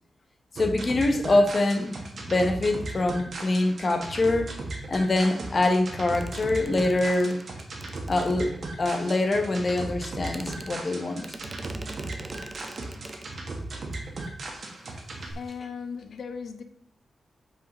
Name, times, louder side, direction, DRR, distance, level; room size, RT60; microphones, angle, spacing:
voice 1, 0.5-4.5 4.9-7.4 8.1-11.3, left 2 dB, 35° left, 1.0 m, -24 dB
sound 1, 0.6-15.3, right 2 dB, 50° right, 1.4 m, -37 dB
sound 2, 6.1-8.9 9.8-9.9 10.2-13.5 13.8-14.0 14.2-14.5, right 2 dB, 25° right, 0.6 m, -44 dB
voice 2, 15.3-16.6, left 6 dB, 60° left, 0.7 m, -37 dB
6.0 x 4.8 x 5.5 m
wide cardioid pair, 150°, 0 cm